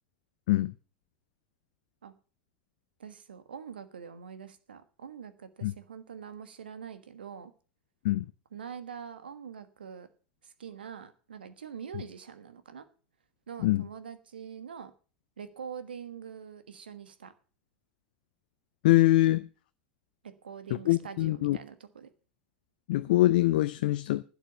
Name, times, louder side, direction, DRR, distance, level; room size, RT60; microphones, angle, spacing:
voice 1, 3.0-7.5 8.5-10.1 10.4-12.8 13.5-14.9 15.4-17.3 20.2-22.1, right 7 dB, 75° right, 1.4 m, -44 dB
voice 2, 18.8-19.5 20.9-21.6 22.9-24.2, left 16 dB, 60° left, 0.5 m, -24 dB
11.5 x 8.3 x 6.9 m
figure-of-eight pair, 85°, 5 cm